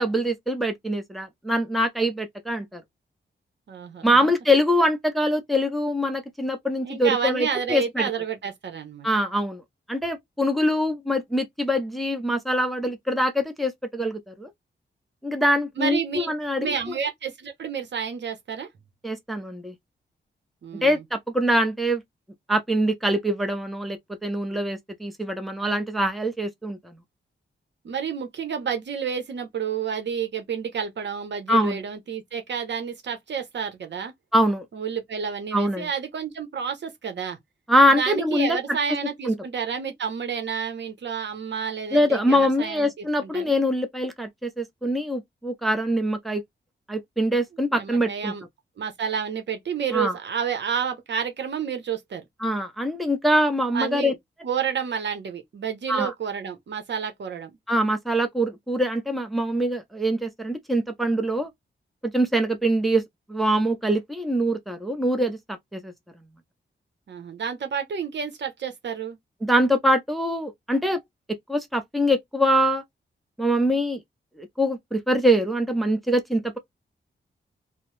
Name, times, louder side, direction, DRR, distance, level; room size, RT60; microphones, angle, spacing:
voice 1, 0.0-2.8 4.0-8.1 9.0-9.6 9.9-14.5 15.2-16.7 19.0-19.7 20.8-22.0 22.5-26.9 31.5-31.8 34.3-34.6 35.5-35.9 37.7-38.6 39.2-39.4 41.9-46.4 46.9-48.3 49.9-50.1 52.4-54.1 55.9-56.1 57.7-61.5 62.0-63.0 63.3-65.9 69.4-71.0 71.5-72.8 73.4-74.0 74.4-76.6, equal, ahead, 0.6 m, -23 dB
voice 2, 3.7-4.3 6.8-9.1 15.8-16.3 16.6-18.7 20.6-21.0 27.8-34.1 34.7-37.4 38.0-43.5 47.7-48.4 48.8-52.2 53.7-54.2 54.4-57.6 67.1-69.2, right 7 dB, 65° right, 0.8 m, -30 dB
2.8 x 2.0 x 3.1 m
wide cardioid pair, 115°, 19 cm